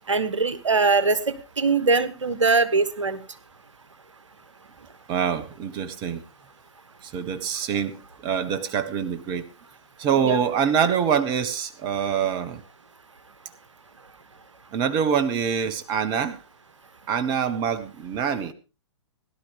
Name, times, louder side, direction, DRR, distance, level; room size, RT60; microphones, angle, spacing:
voice 1, 0.1-3.2 10.2-10.4, right 4 dB, 80° right, 12 dB, 1.3 m, -22 dB
voice 2, 5.1-6.2 7.0-9.5 10.0-12.6 14.7-16.4 17.1-18.5, right 7 dB, 30° right, 11 dB, 1.2 m, -25 dB
17.5 x 11.5 x 3.5 m, 0.33 s
figure-of-eight pair, 115°, 15 cm